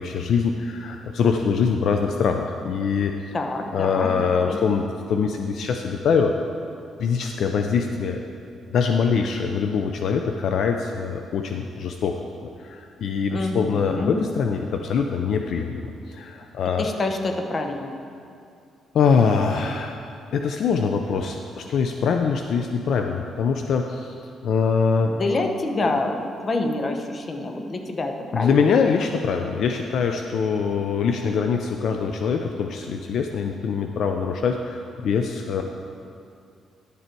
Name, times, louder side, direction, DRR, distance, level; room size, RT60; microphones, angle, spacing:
voice 1, 0.0-3.2 3.7-6.3 7.0-8.2 8.7-16.9 18.9-20.0 20.3-24.2 24.4-25.1 28.3-35.6, left 6 dB, 70° left, 4 dB, 0.4 m, -23 dB
voice 2, 3.3-4.6 13.3-14.2 16.8-18.0 25.0-28.7 35.6-35.7, left 2 dB, 40° left, 4 dB, 0.9 m, -27 dB
11.0 x 6.8 x 4.5 m, 2.4 s
cardioid pair, 90°, 0 cm